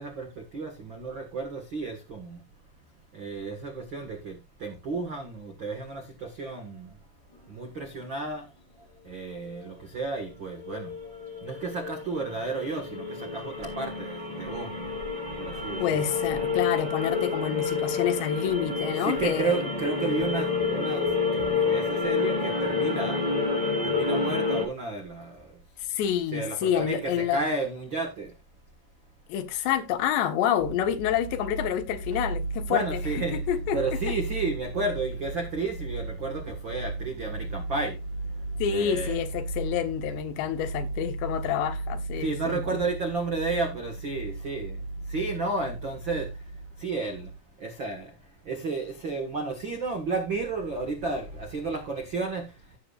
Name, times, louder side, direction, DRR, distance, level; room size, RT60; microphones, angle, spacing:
voice 1, 0.0-2.4 3.1-7.0 7.5-14.9 15.3-16.1 19.0-23.4 23.8-25.6 26.3-28.4 32.7-33.4 33.7-39.2 42.2-52.8, right 3 dB, 75° right, 1.1 m, -33 dB
sound 1, 9.6-9.7 10.6-24.7, left 4 dB, 15° left, 1.7 m, -29 dB
voice 2, 15.8-19.7 25.8-27.4 29.3-33.8 38.6-42.8, left 9 dB, 80° left, 3.5 m, -28 dB
sound 2, 30.6-47.4, right 2 dB, 60° left, 3.2 m, -36 dB
16.0 x 7.0 x 2.4 m
omnidirectional pair, 5.0 m